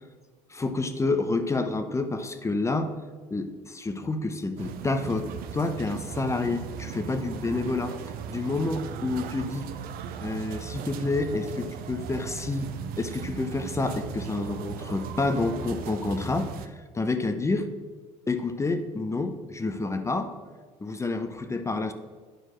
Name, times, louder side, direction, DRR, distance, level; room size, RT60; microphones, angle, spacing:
voice 1, 0.5-2.9 3.3-8.0 8.3-9.7 10.2-12.7 13.0-16.7 16.9-17.7 18.3-20.3 20.8-21.9, left 3 dB, 15° left, 9 dB, 0.8 m, -29 dB
sound 1, 4.6-16.7, right 8 dB, 65° right, 0.7 m, -37 dB
9.1 x 4.7 x 6.1 m, 1.4 s
supercardioid pair, 85°, 16 cm